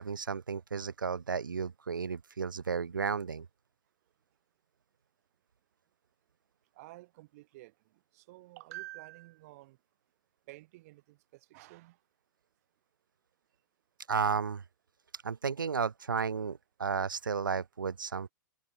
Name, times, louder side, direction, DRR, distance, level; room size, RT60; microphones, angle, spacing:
voice 1, 0.0-3.5 14.1-14.6 15.2-18.3, right 5 dB, 90° right, 0.8 m, -33 dB
voice 2, 6.7-7.7 8.1-9.8 10.5-12.0, right 19 dB, 50° right, 7.5 m, -50 dB
hypercardioid pair, 120°, 10 cm